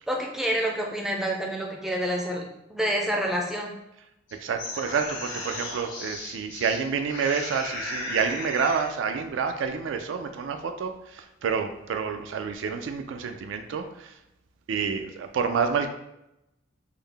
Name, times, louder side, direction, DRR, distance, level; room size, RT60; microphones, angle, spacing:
voice 1, 0.1-3.7, equal, ahead, 0 dB, 0.4 m, -28 dB
sound 1, 4.3-6.8 7.1-8.9, left 2 dB, 75° left, 0.9 m, -35 dB
voice 2, 4.4-14.1 14.7-15.9, right 6 dB, 75° right, 6 dB, 0.3 m, -28 dB
3.7 x 2.0 x 3.2 m, 0.85 s
head